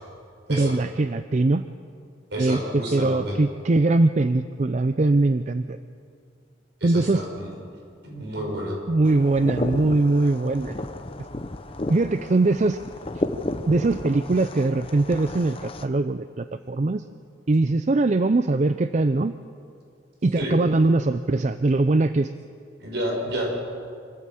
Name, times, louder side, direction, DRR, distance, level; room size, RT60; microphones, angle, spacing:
voice 1, 0.5-1.6 2.4-5.8 6.8-7.2 8.9-10.8 11.9-12.8 13.1-13.2 13.7-17.0 17.5-19.3 20.2-22.3, right 2 dB, 40° right, 11 dB, 0.5 m, -21 dB
voice 2, 2.3-3.4 6.8-7.5 8.0-8.8 20.4-20.6 22.8-23.5, equal, 65° right, 0 dB, 5.7 m, -30 dB
sound 1, 9.0-15.9, left 2 dB, 30° left, 0.9 m, -33 dB
25.5 x 14.0 x 7.7 m, 2.3 s
head